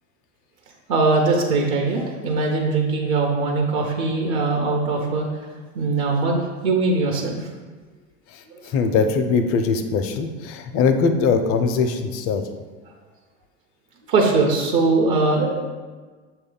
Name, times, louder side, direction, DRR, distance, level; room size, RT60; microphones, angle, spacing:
voice 1, 0.9-5.3 5.7-7.5 8.5-8.6 14.0-15.6, right 3 dB, 55° right, 1 dB, 0.8 m, -21 dB
voice 2, 8.7-12.4, left 5 dB, 35° left, 7 dB, 0.4 m, -21 dB
6.3 x 2.3 x 3.7 m, 1.4 s
hypercardioid pair, 85°, 39 cm